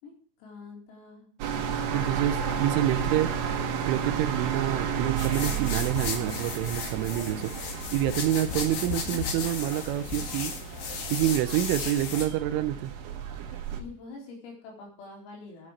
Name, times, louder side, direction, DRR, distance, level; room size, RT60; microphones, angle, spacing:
voice 1, 0.0-1.3 13.3-15.7, left 3 dB, 85° left, 0 dB, 6.7 m, -46 dB
sound 1, 1.4-13.8, right 7 dB, 65° right, 2.8 m, -33 dB
voice 2, 1.9-3.3 3.9-10.5 11.1-12.9, right 13 dB, 80° right, 11 dB, 3.1 m, -27 dB
sound 2, 5.2-12.3, left 5 dB, 55° left, 3.0 m, -35 dB
11.0 x 9.0 x 6.4 m, 0.43 s
omnidirectional pair, 5.9 m